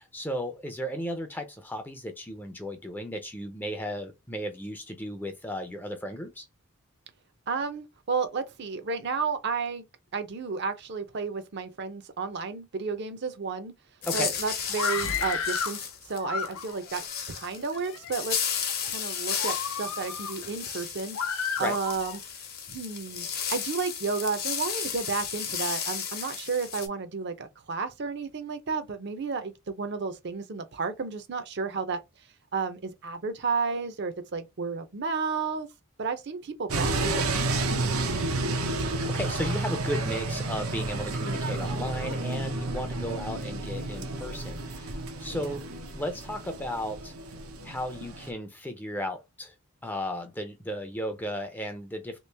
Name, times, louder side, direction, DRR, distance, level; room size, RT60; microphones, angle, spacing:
voice 1, 0.0-6.5 14.1-14.3 21.6-21.8 38.8-45.6 45.9-47.1 47.6-49.5 49.8-52.2, equal, 10° left, 0.5 m, -35 dB
voice 2, 7.5-9.8 10.1-13.7 14.1-18.4 18.9-21.3 21.6-22.2 22.7-32.0 32.5-35.7 36.0-37.4 45.3-45.5, right 4 dB, 55° right, 0.6 m, -32 dB
sound 1, 14.0-26.9, left 7 dB, 45° left, 0.8 m, -34 dB
Screaming, 14.7-15.8 16.2-16.9 17.6-18.2 18.7-18.9 19.4-20.4 21.1-22.2, left 6 dB, 80° left, 0.6 m, -32 dB
sound 2, 36.7-48.3, right 2 dB, 90° right, 0.7 m, -31 dB
3.0 x 2.9 x 3.3 m
head